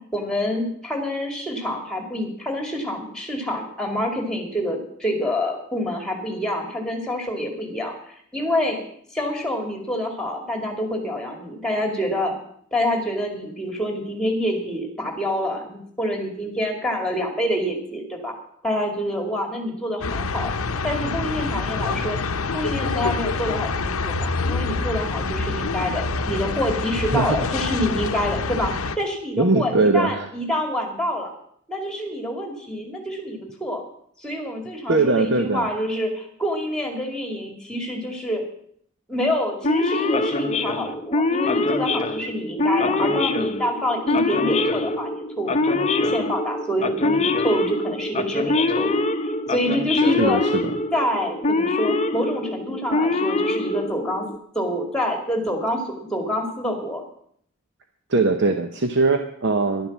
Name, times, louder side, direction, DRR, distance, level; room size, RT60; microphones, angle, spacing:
voice 1, 0.0-8.8 9.1-12.3 12.7-18.3 18.6-20.5 20.8-22.2 22.5-31.3 31.7-33.8 34.2-38.4 39.1-45.1 45.4-50.4 50.9-54.3 54.5-57.0, equal, 5° left, 3 dB, 2.3 m, -27 dB
sound 1, 20.0-29.0, left 4 dB, 75° left, 0.8 m, -26 dB
voice 2, 29.4-30.3 34.9-35.7 50.1-50.7 58.1-59.9, right 3 dB, 50° right, 6 dB, 0.8 m, -21 dB
Male speech man speaking / Siren, 39.6-54.4, left 2 dB, 30° left, 0.8 m, -24 dB
11.5 x 11.0 x 7.2 m, 0.65 s
head